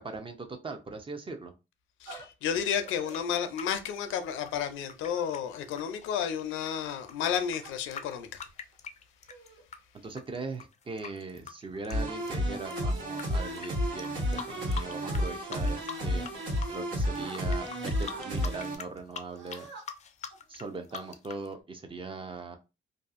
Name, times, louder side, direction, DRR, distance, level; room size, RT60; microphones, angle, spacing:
voice 1, 0.0-1.5 10.0-16.3 16.7-19.7 20.5-22.6, right 3 dB, 25° right, 0.5 m, -40 dB
voice 2, 2.0-8.4, left 8 dB, 90° left, 0.5 m, -32 dB
sound 1, 2.1-2.3 2.8-3.2 3.7-4.0 5.1-5.5 6.1-6.4 7.2-7.7 8.6-8.8 9.3-9.6 10.1-10.4 10.9-11.2 11.7-12.0 13.3-13.9 14.3-15.3 15.9-16.7 17.0-17.4 17.9-18.3 19.3-19.8 20.3-20.5 20.9-21.6, right 3 dB, 65° right, 0.9 m, -49 dB
sound 2, 2.6-9.8 10.1-13.2 13.6-13.7 14.0-15.2 15.5-16.3 16.6-21.5, left 7 dB, 35° left, 0.4 m, -43 dB
sound 3, 11.9-18.8, equal, 80° right, 1.4 m, -31 dB
2.6 x 2.4 x 2.4 m
cardioid pair, 90°, 20 cm